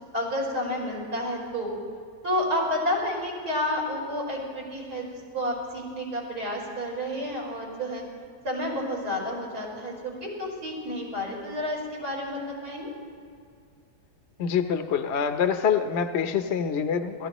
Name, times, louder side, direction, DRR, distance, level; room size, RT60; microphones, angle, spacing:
voice 1, 0.1-1.7 2.2-8.0 8.4-12.9, left 1 dB, 80° right, -3 dB, 5.2 m, -30 dB
voice 2, 14.4-17.3, left 7 dB, 50° left, 7 dB, 1.0 m, -25 dB
29.0 x 14.5 x 3.1 m, 2.2 s
omnidirectional pair, 1.7 m